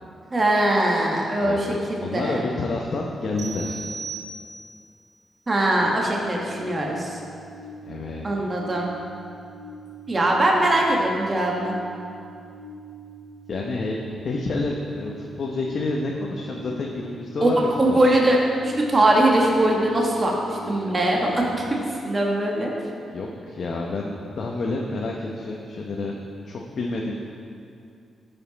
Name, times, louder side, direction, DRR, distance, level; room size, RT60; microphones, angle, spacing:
voice 1, 0.3-2.4 5.5-7.2 8.2-8.9 10.1-11.7 17.4-18.4 18.6-22.7, right 1 dB, 30° right, -1 dB, 1.4 m, -21 dB
voice 2, 1.4-3.8 7.8-8.3 13.5-18.0 23.1-26.2 26.4-27.1, left 2 dB, 60° left, -1 dB, 0.8 m, -29 dB
sound 1, 3.4-4.9, right 4 dB, 80° right, 0.9 m, -36 dB
sound 2, 5.7-21.6, right 2 dB, 35° left, 2.2 m, -43 dB
12.5 x 5.5 x 4.1 m, 2.5 s
cardioid pair, 90°, 0 cm